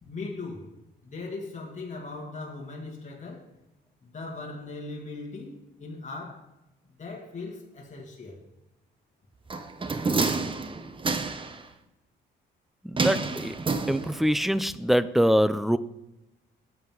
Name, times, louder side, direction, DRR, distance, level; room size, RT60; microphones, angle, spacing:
voice 1, 0.0-0.7 1.0-3.5 4.0-6.5 7.0-8.5, left 3 dB, 35° left, 2.3 m, -39 dB
sound 1, 9.5-11.6 13.0-14.4 14.7-14.8, right 4 dB, 25° right, 0.8 m, -29 dB
voice 2, 12.8-13.5 13.9-15.8, equal, ahead, 0.4 m, -24 dB
10.5 x 7.8 x 3.9 m
cardioid pair, 90°, 20 cm